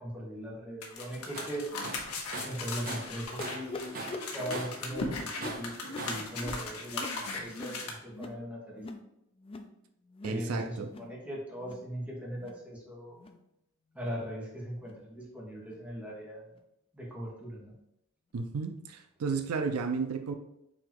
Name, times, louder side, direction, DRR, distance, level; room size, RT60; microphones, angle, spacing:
voice 1, 0.0-1.7 2.4-8.9 10.2-13.2 13.9-16.5 16.9-17.7, equal, 5° right, -4 dB, 1.2 m, -40 dB
sound 1, 0.8-7.9, left 3 dB, 85° left, 1.0 m, -38 dB
Tools, 1.3-1.6 1.8-3.7 3.9-4.9 5.4-6.3, right 2 dB, 40° right, 0.7 m, -40 dB
sound 2, 3.4-8.4 8.7-9.1 9.4-9.7 10.1-10.4 10.8-11.1 11.5-11.9 12.3-12.6 13.1-13.4 14.0-14.2 14.8-15.0 15.7-15.8 16.5-16.6, left 2 dB, 25° left, 0.3 m, -43 dB
voice 2, 10.2-10.9 18.3-20.3, right 5 dB, 80° right, 7 dB, 0.4 m, -33 dB
4.0 x 2.9 x 4.5 m, 0.82 s
head